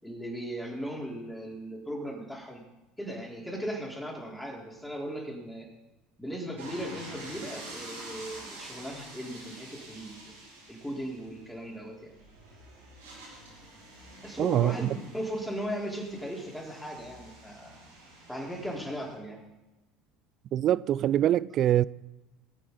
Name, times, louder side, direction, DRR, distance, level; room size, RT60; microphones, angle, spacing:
voice 1, 0.0-2.6 3.0-5.7 6.2-10.3 10.7-12.1 14.2-17.8 18.3-19.4, equal, 5° left, 3.8 m, -37 dB
sound 1, 6.6-19.1, right 2 dB, 80° right, 5.1 m, -47 dB
voice 2, 14.4-14.9 20.5-21.8, right 12 dB, 50° right, 0.4 m, -24 dB
19.5 x 8.5 x 4.0 m
hypercardioid pair, 70°, 0 cm